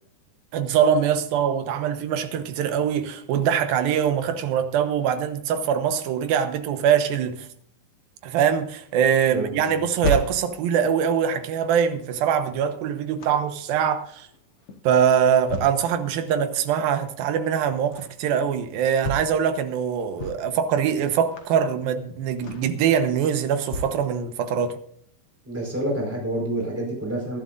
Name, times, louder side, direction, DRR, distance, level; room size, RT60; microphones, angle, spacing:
voice 1, 0.5-7.5 8.2-14.3 14.8-24.8, right 8 dB, 75° right, 2.8 m, -23 dB
voice 2, 9.3-9.9 25.4-27.4, right 1 dB, 5° right, 4.2 m, -28 dB
sound 1, 9.6-24.0 24.5-24.6, equal, 55° left, 1.8 m, -36 dB
22.0 x 11.5 x 2.6 m
omnidirectional pair, 4.3 m